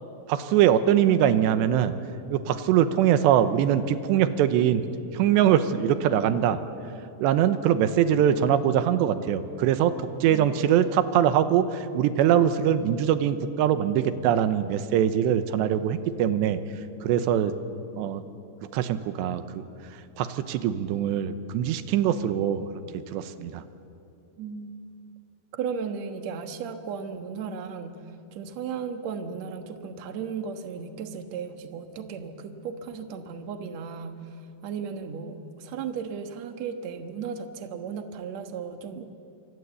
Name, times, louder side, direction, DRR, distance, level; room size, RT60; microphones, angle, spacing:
voice 1, 0.3-1.9 2.3-4.9 5.1-6.6 7.2-16.6 17.0-17.5 18.0-18.2 18.7-19.6 20.2-22.6 23.1-23.6, right 10 dB, 90° right, 11 dB, 3.2 m, -22 dB
voice 2, 24.4-24.8 25.5-39.1, right 6 dB, 60° right, 7 dB, 1.8 m, -35 dB
26.5 x 25.0 x 8.3 m, 2.6 s
omnidirectional pair, 5.0 m